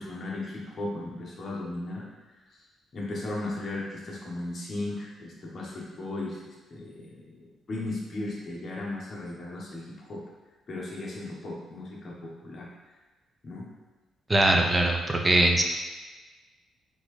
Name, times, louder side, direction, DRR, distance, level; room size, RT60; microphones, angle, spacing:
voice 1, 0.0-2.0 2.5-2.6 2.9-6.4 6.7-10.2 10.7-12.7 13.4-13.7, left 2 dB, 40° left, -4 dB, 1.2 m, -36 dB
voice 2, 14.3-15.6, right 1 dB, 20° right, 2 dB, 0.6 m, -21 dB
4.0 x 3.5 x 3.3 m, 1.2 s
cardioid pair, 90°, 0 cm